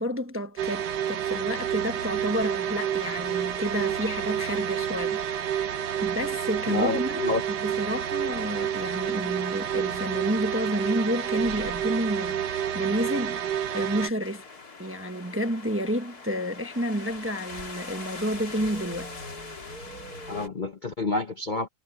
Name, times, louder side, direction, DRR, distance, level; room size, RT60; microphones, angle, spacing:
voice 1, 0.0-5.2 5.5-14.5 14.8-19.1, equal, 10° right, 0.8 m, -30 dB
sound 1, 0.6-14.1, right 9 dB, 75° right, 1.5 m, -29 dB
voice 2, 6.7-7.4 20.3-21.7, left 3 dB, 35° left, 0.8 m, -28 dB
sound 2, 14.2-20.5, left 3 dB, 60° left, 3.2 m, -41 dB
omnidirectional pair, 1.8 m